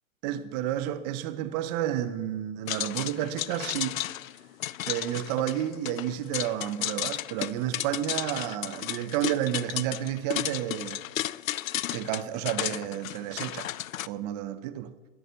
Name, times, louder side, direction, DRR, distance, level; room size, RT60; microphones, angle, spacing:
voice 1, 0.2-4.0 4.8-11.0 11.9-13.7 14.1-14.9, right 12 dB, 30° right, 0.8 m, -31 dB
sound 1, 2.7-14.1, left 13 dB, 85° left, 0.6 m, -34 dB
13.0 x 11.5 x 6.7 m
hypercardioid pair, 145°, 39 cm